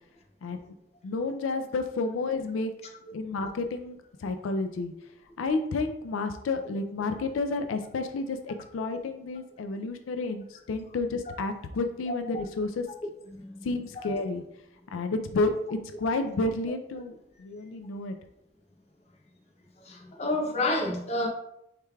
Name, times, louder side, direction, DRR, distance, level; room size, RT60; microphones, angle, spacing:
voice 1, 0.4-0.7 1.0-2.7 3.1-4.9 5.4-12.8 13.6-14.4 14.9-18.2, left 3 dB, 85° left, 0.4 m, -31 dB
voice 2, 13.3-13.7 14.0-14.1 19.8-21.3, left 2 dB, 35° left, 0.7 m, -30 dB
6.5 x 3.2 x 2.3 m
head